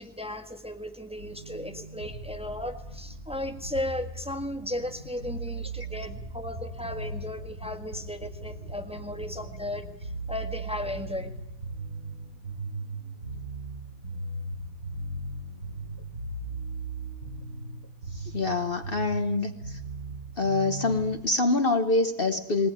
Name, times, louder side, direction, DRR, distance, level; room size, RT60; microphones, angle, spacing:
voice 1, 0.0-11.3, left 1 dB, 5° right, 4 dB, 1.6 m, -35 dB
sound 1, 1.2-21.1, right 2 dB, 90° right, 3.0 m, -38 dB
voice 2, 18.1-19.8 20.4-22.7, left 3 dB, 45° left, 7 dB, 1.2 m, -26 dB
20.0 x 19.0 x 10.0 m, 0.85 s
omnidirectional pair, 1.4 m